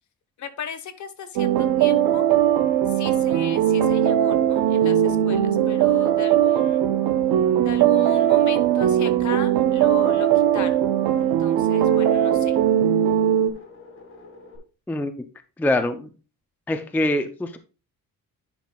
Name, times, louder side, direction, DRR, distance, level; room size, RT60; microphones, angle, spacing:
voice 1, 0.4-2.3 2.9-6.8 7.6-10.3 10.5-10.8 11.2-12.6, left 7 dB, 55° left, 10 dB, 1.0 m, -37 dB
sound 1, 1.4-13.5, right 10 dB, 85° right, 0.7 m, -19 dB
sound 2, 5.7-14.6, left 3 dB, 35° left, 1.8 m, -46 dB
voice 2, 15.6-16.1 16.7-17.6, left 1 dB, 5° left, 8 dB, 0.4 m, -24 dB
10.5 x 5.7 x 2.3 m, 0.34 s
cardioid pair, 140°, 36 cm